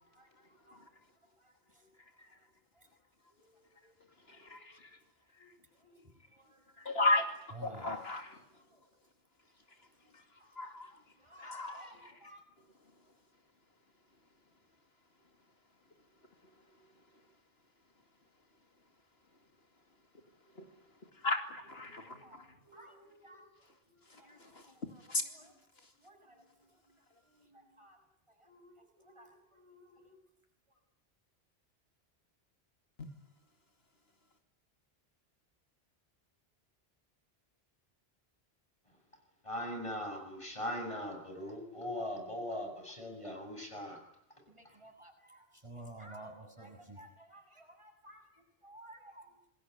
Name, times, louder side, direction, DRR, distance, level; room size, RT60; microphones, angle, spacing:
voice 1, 1.4-1.9 2.8-2.9 3.3-4.0 4.3-4.8 5.4-5.5 5.8-6.0 6.3-6.6 7.5-8.1 8.7-8.8 10.3-10.6 11.2-12.4 21.8-23.5 23.9-25.5 26.0-26.7 27.3-28.0 28.4-30.2 44.5-49.4, right 1 dB, 30° right, 4 dB, 7.2 m, -55 dB
voice 2, 4.3-4.9 6.8-7.3 7.6-8.3 10.6-10.9 11.4-12.1 21.2-22.2 24.5-24.6 25.1-25.2, left 2 dB, 75° left, 5 dB, 2.8 m, -34 dB
voice 3, 39.5-44.0, left 1 dB, 30° left, 3 dB, 7.6 m, -40 dB
27.5 x 21.5 x 9.5 m, 0.77 s
omnidirectional pair, 1.1 m